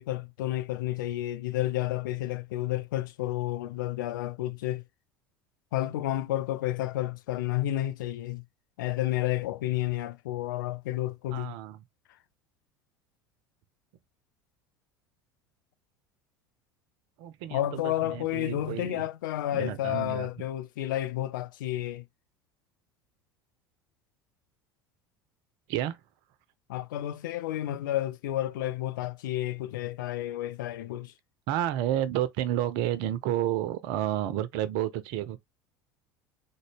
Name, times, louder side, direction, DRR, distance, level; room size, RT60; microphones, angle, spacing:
voice 1, 0.0-4.8 5.7-8.4 8.8-11.6 17.5-22.1 26.7-31.1, left 14 dB, 60° left, 0.4 m, -31 dB
voice 2, 11.3-11.8 17.2-19.0 19.5-20.3 25.7-26.0 31.5-35.4, right 12 dB, 50° right, 0.5 m, -30 dB
3.7 x 2.0 x 3.3 m
figure-of-eight pair, 70°, 12 cm